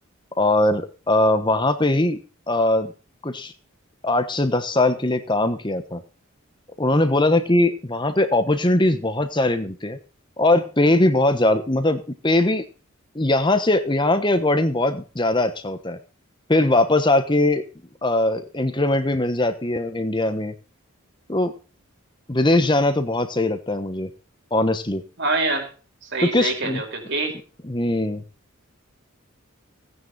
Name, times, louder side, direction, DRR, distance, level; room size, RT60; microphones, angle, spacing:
voice 1, 0.4-2.2 2.5-2.9 3.2-3.5 4.0-6.0 6.8-10.0 10.4-12.6 13.1-16.0 16.5-17.6 18.0-20.5 21.3-21.5 22.3-24.1 24.5-25.0 26.2-26.8 27.7-28.2, left 2 dB, 20° left, 9 dB, 1.1 m, -20 dB
voice 2, 25.2-25.7 26.0-27.3, right 3 dB, 55° right, 4 dB, 5.0 m, -25 dB
17.0 x 9.8 x 4.2 m, 0.36 s
head